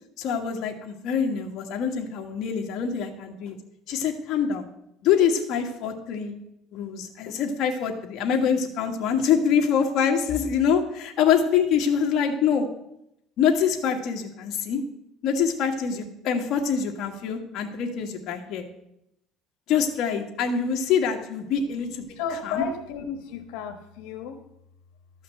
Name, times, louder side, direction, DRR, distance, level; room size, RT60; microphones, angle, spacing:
voice 1, 0.2-3.6 3.9-4.6 5.0-6.3 6.7-12.7 13.4-14.8 15.2-18.6 19.7-22.0 22.4-22.6, left 7 dB, 50° left, 2 dB, 1.7 m, -25 dB
voice 2, 22.1-24.4, left 6 dB, 85° left, 5 dB, 1.2 m, -33 dB
12.5 x 5.7 x 7.7 m, 0.81 s
cardioid pair, 145°, 0 cm